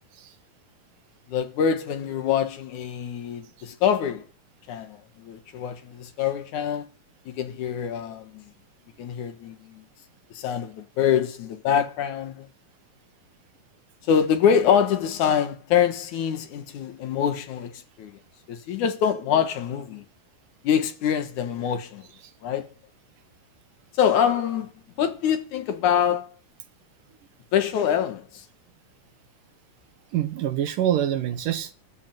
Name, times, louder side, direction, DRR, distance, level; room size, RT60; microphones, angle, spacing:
voice 1, 1.3-4.3 4.7-6.9 7.3-8.4 9.0-9.8 10.3-12.5 14.1-18.2 18.5-20.0 20.6-22.1 22.4-22.7 24.0-24.7 25.0-26.3 27.5-28.5, left 8 dB, 65° left, 2.7 m, -25 dB
voice 2, 30.1-31.7, right 11 dB, 75° right, 3.0 m, -25 dB
13.5 x 7.6 x 9.1 m
omnidirectional pair, 3.8 m